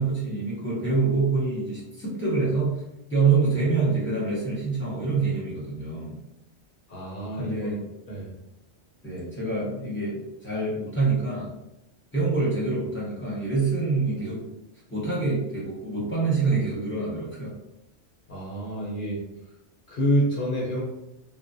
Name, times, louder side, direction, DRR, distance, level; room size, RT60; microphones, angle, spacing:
voice 1, 0.0-2.8 3.1-6.2 7.4-7.8 9.0-11.5 12.1-14.5 14.9-17.5, right 4 dB, 10° left, -8 dB, 0.7 m, -26 dB
voice 2, 6.9-7.6 8.1-8.3 18.3-19.2 19.9-20.8, equal, 55° left, -5 dB, 0.7 m, -27 dB
2.3 x 2.1 x 2.6 m, 0.87 s
omnidirectional pair, 1.2 m